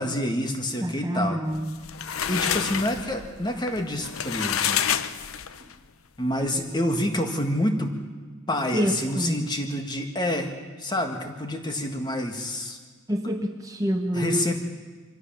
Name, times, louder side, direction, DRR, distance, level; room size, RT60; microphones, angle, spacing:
voice 1, 0.0-1.4 2.3-4.9 6.2-7.9 8.5-10.5 10.8-12.8 14.1-14.5, left 1 dB, 20° left, 5 dB, 1.7 m, -27 dB
voice 2, 0.8-1.7 5.6-5.7 8.7-9.4 13.1-14.5, equal, 15° right, 4 dB, 1.0 m, -27 dB
sound 1, 1.6-5.7, left 9 dB, 80° left, 0.7 m, -28 dB
23.5 x 16.0 x 7.4 m, 1.4 s
head